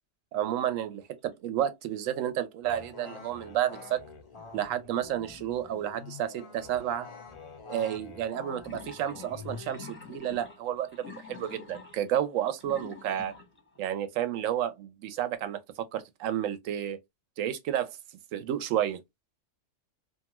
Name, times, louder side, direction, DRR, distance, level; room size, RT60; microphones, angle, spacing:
voice 1, 0.3-4.0 4.5-7.1 7.7-13.4 13.8-17.0 17.4-18.0 18.3-19.0, right 11 dB, 80° right, 0.9 m, -31 dB
sound 1, 0.5-0.9 1.3-1.4 8.6-13.9, left 5 dB, 10° left, 0.7 m, -48 dB
sound 2, 2.6-10.2, left 5 dB, 45° left, 0.4 m, -46 dB
2.6 x 2.3 x 2.9 m
omnidirectional pair, 1.3 m